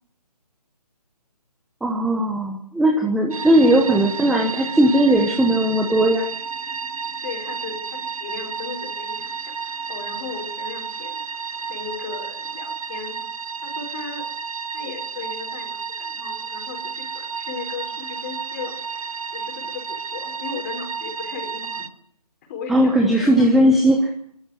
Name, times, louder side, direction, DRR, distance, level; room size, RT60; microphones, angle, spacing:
voice 1, 1.8-6.3 22.7-24.0, right 1 dB, ahead, 2 dB, 0.9 m, -18 dB
sound 1, 3.3-21.9, right 6 dB, 55° right, 1.2 m, -32 dB
voice 2, 7.2-11.2 11.7-13.1 13.6-14.3 14.6-18.8 19.3-21.9 22.5-23.5, left 5 dB, 25° left, 3 dB, 5.0 m, -36 dB
23.0 x 13.0 x 9.7 m, 0.66 s
figure-of-eight pair, 155°, 21 cm